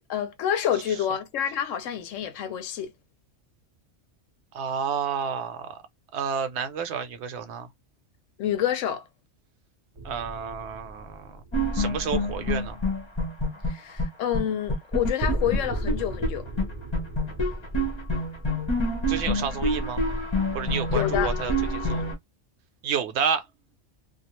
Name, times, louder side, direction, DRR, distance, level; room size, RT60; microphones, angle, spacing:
voice 1, 0.1-2.9 8.4-9.0 13.7-16.5 20.9-21.3, left 10 dB, 85° left, 1.0 m, -28 dB
voice 2, 4.5-5.8 6.1-7.7 10.0-11.4 11.7-12.8 19.1-20.0 20.5-22.0 22.8-23.4, right 7 dB, 70° right, 0.8 m, -30 dB
sound 1, 10.0-12.7 15.2-19.3, right 1 dB, 30° right, 0.5 m, -36 dB
sound 2, 11.5-14.1 14.3-14.4 14.7-16.3 16.6-16.7 16.9-22.1, left 1 dB, 30° left, 0.7 m, -27 dB
2.3 x 2.2 x 3.0 m
omnidirectional pair, 1.3 m